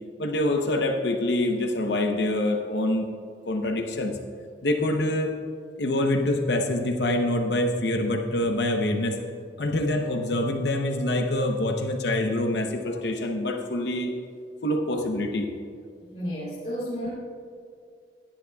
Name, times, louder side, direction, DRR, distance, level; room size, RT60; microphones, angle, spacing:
voice 1, 0.2-3.1 3.5-4.1 4.6-5.3 5.8-9.2 9.6-14.1 14.6-15.5, left 1 dB, 70° left, 4 dB, 0.8 m, -25 dB
voice 2, 16.0-17.1, equal, 35° left, -8 dB, 2.9 m, -32 dB
17.0 x 11.0 x 2.3 m, 2.4 s
head